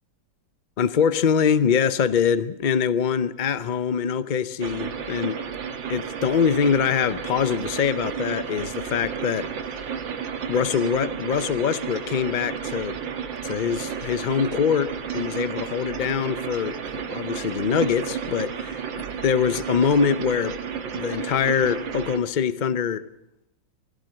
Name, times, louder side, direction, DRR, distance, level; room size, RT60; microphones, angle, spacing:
voice 1, 0.8-5.4 5.9-9.5 10.5-12.9 13.4-18.8 19.2-20.5 20.9-23.1, left 7 dB, 60° left, 0.5 m, -23 dB
sound 1, 4.6-22.2, right 7 dB, 90° right, 2.2 m, -32 dB
21.5 x 16.5 x 7.7 m
omnidirectional pair, 2.0 m